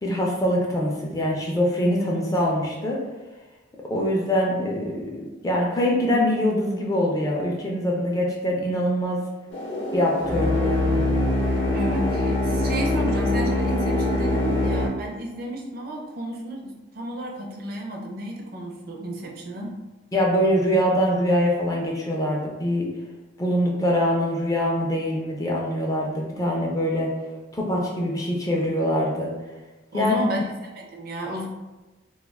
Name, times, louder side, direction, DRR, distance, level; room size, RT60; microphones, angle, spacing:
voice 1, 0.0-3.0 3.9-9.2 9.9-11.0 20.1-22.9 23.4-27.1 27.5-29.3 29.9-30.2, equal, 20° left, -2 dB, 0.3 m, -23 dB
voice 2, 2.0-2.3 11.7-19.8 29.9-31.5, right 1 dB, 50° right, 0 dB, 0.5 m, -32 dB
sound 1, 9.5-14.9, left 2 dB, 65° left, 0.6 m, -23 dB
2.3 x 2.2 x 3.3 m, 1.1 s
head